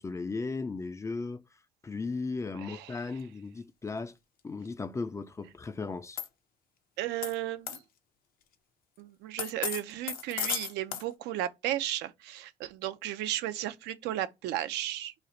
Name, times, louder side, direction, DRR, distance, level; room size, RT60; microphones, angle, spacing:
voice 1, 0.0-1.4 1.8-4.1 4.4-6.2, left 4 dB, 15° left, 0.3 m, -36 dB
voice 2, 2.6-3.0 7.0-7.8 9.0-15.1, right 13 dB, 85° right, 0.5 m, -34 dB
sound 1, 6.2-6.3 7.2-7.3 7.7-7.8 9.4-11.0, left 8 dB, 60° left, 0.6 m, -33 dB
3.1 x 2.4 x 4.0 m
cardioid pair, 110°, 17 cm